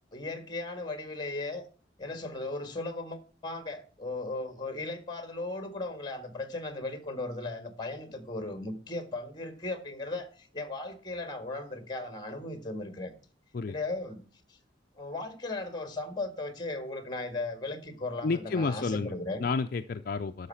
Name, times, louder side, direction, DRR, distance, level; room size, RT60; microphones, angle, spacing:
voice 1, 0.1-1.7 2.0-13.1 13.7-14.2 15.0-19.5, left 2 dB, 25° left, 1.7 m, -37 dB
voice 2, 18.2-19.1 19.4-20.5, left 4 dB, 50° left, 0.4 m, -30 dB
12.0 x 6.5 x 5.7 m
head